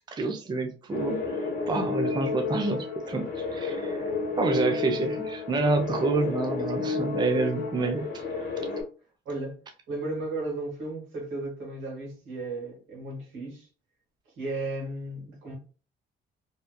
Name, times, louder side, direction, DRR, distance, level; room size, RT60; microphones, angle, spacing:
voice 1, 0.1-4.0 4.4-8.5, right 3 dB, 20° right, 0.4 m, -28 dB
sound 1, 0.9-8.8, left 4 dB, 55° left, 1.1 m, -31 dB
voice 2, 9.2-9.6 9.9-13.7 14.4-15.5, right 2 dB, 80° right, 1.4 m, -34 dB
2.8 x 2.2 x 2.2 m
cardioid pair, 90°, 20 cm